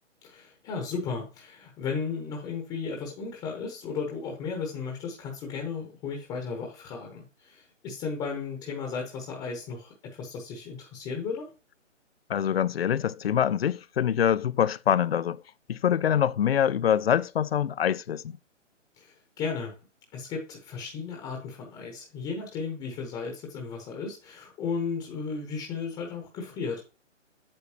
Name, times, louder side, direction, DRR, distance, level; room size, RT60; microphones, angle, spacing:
voice 1, 0.2-11.5 19.0-19.8 20.1-26.8, left 5 dB, 10° left, 1.1 m, -35 dB
voice 2, 12.3-15.4 15.7-18.4, left 9 dB, 55° left, 0.4 m, -25 dB
8.6 x 6.5 x 2.8 m
hypercardioid pair, 150°, 38 cm